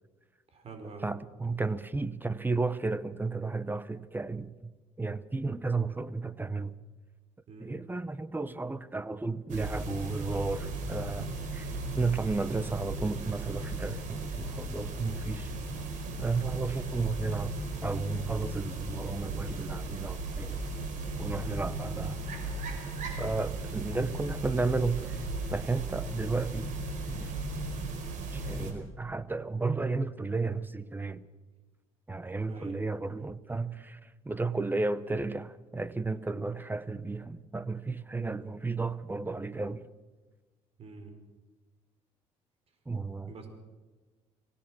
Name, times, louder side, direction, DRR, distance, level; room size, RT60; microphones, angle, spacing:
voice 1, 0.5-1.1 7.5-7.8 21.4-21.7 32.5-32.8 40.8-41.1 43.3-43.5, right 4 dB, 50° right, 4.9 m, -45 dB
voice 2, 1.0-4.7 5.0-6.8 7.6-15.5 16.2-17.6 17.8-20.6 21.2-22.2 23.2-25.2 25.5-26.7 27.1-27.4 28.3-31.2 32.1-39.8 42.9-43.3, right 3 dB, 15° right, 1.0 m, -33 dB
sound 1, 9.5-28.7, right 2 dB, 70° right, 4.9 m, -36 dB
24.5 x 17.5 x 6.3 m
cardioid pair, 90°, 13 cm